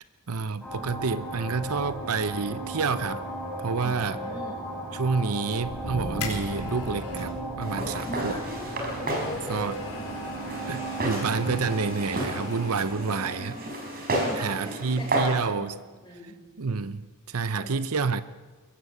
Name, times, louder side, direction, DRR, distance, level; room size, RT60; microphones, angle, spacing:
voice 1, 0.3-3.2 3.6-4.2 4.9-8.4 9.5-9.8 10.7-13.6 14.4-15.8 16.2-16.3 16.6-17.0 17.3-18.2, right 4 dB, 70° right, 14 dB, 0.8 m, -29 dB
sound 1, 0.6-14.8, right 1 dB, 5° left, 5.0 m, -36 dB
voice 2, 3.8-4.8 8.0-8.7 9.0-10.0 12.9-13.7 14.1-15.1 15.5-16.4 17.5-17.7, right 1 dB, 20° left, -1 dB, 6.0 m, -39 dB
sound 2, 5.6-7.4 8.5-13.2 13.5-13.6, left 2 dB, 75° left, 4.6 m, -40 dB
Walk footsteps, 7.6-15.4, right 1 dB, 45° right, 5.2 m, -32 dB
22.0 x 16.0 x 8.2 m, 1.4 s
head